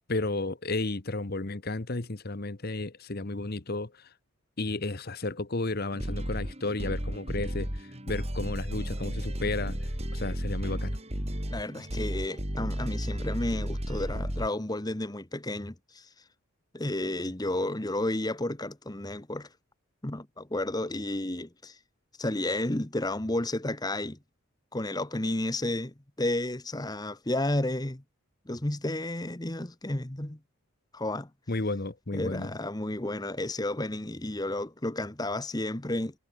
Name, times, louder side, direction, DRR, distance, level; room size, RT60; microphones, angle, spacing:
voice 1, 0.1-3.9 4.6-7.7 8.1-9.8 10.1-11.0 31.5-32.5, left 2 dB, 45° left, 1.2 m, -32 dB
sound 1, 5.9-14.5, equal, 30° right, 3.8 m, -33 dB
voice 2, 11.5-16.1 16.7-19.5 20.0-21.8 22.2-24.2 24.7-28.0 28.5-30.4 30.9-31.3 32.1-36.1, left 1 dB, 20° left, 1.2 m, -32 dB
head